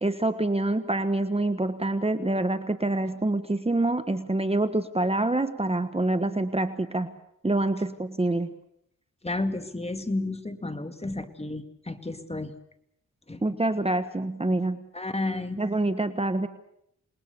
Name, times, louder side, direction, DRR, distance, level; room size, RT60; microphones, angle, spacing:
voice 1, 0.0-7.1 7.4-8.5 13.4-14.8 15.6-16.5, right 2 dB, 20° right, 10 dB, 1.3 m, -26 dB
voice 2, 9.2-12.5 13.3-13.4 14.9-15.6, left 2 dB, 20° left, 7 dB, 2.3 m, -32 dB
28.0 x 21.0 x 6.9 m, 0.76 s
cardioid pair, 70°, 32 cm